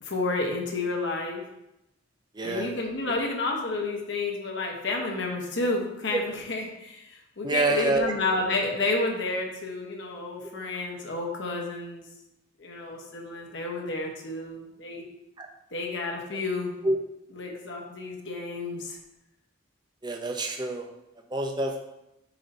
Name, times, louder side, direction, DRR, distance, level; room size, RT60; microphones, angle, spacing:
voice 1, 0.0-1.4 2.4-12.1 12.6-15.0 15.7-16.7 17.3-19.0, left 2 dB, 60° left, 0 dB, 1.1 m, -30 dB
voice 2, 2.4-2.7 6.1-6.2 7.4-8.1 15.4-15.5 16.8-17.0 20.0-20.9 21.3-21.8, right 2 dB, 20° right, 3 dB, 0.6 m, -26 dB
7.6 x 2.8 x 5.2 m, 0.88 s
head